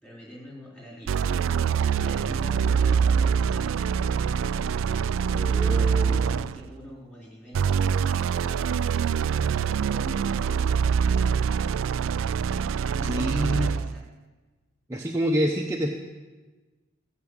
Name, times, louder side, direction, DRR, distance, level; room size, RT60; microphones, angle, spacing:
voice 1, 0.0-4.4 5.6-9.1 9.7-12.0 12.8-14.0, left 1 dB, 10° left, -4 dB, 4.2 m, -44 dB
sound 1, 1.1-6.7 7.5-13.9, right 7 dB, 70° right, 0.3 m, -24 dB
voice 2, 5.3-6.4 13.0-13.7 14.9-15.9, equal, 15° right, 0 dB, 0.7 m, -27 dB
15.5 x 6.0 x 8.8 m, 1.3 s
head